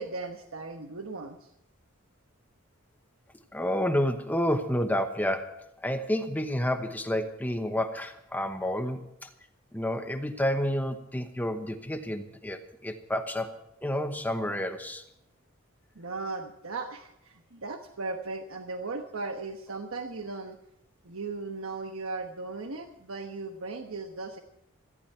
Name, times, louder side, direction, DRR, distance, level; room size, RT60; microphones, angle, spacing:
voice 1, 0.0-1.5 15.9-20.6 21.0-24.4, right 3 dB, 80° right, 5 dB, 1.2 m, -37 dB
voice 2, 3.5-9.3 9.7-13.5 13.8-15.0, left 1 dB, 10° left, 7 dB, 1.0 m, -30 dB
17.5 x 15.0 x 4.5 m, 0.82 s
head